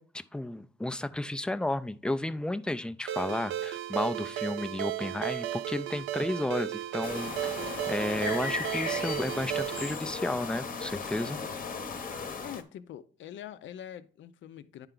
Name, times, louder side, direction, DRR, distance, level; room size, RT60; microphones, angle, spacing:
voice 1, 0.0-11.4, left 1 dB, 5° left, 0.4 m, -33 dB
Ringtone, 3.1-9.9, right 13 dB, 80° right, 0.5 m, -34 dB
sound 1, 7.0-12.6, left 5 dB, 45° left, 0.9 m, -36 dB
voice 2, 12.4-14.9, left 10 dB, 70° left, 0.6 m, -44 dB
9.8 x 4.5 x 3.8 m
cardioid pair, 90°, 20 cm